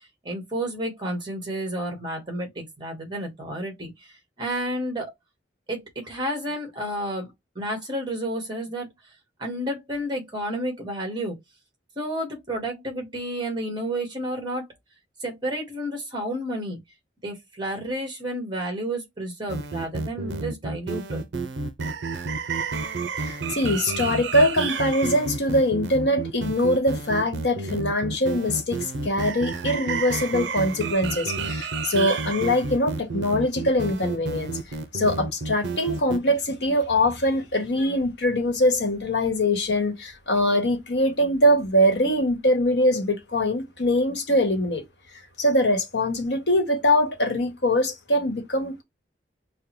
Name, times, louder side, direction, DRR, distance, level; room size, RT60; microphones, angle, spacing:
voice 1, 0.2-3.9 4.4-5.1 5.7-8.9 9.4-11.4 11.9-14.7 15.2-16.8 17.2-21.2, right 1 dB, 25° right, 1.6 m, -31 dB
sound 1, 19.5-36.2, right 4 dB, 75° right, 0.5 m, -30 dB
voice 2, 23.2-34.6 34.9-44.8 45.4-48.8, left 1 dB, 70° left, 1.2 m, -23 dB
5.0 x 2.1 x 3.0 m
head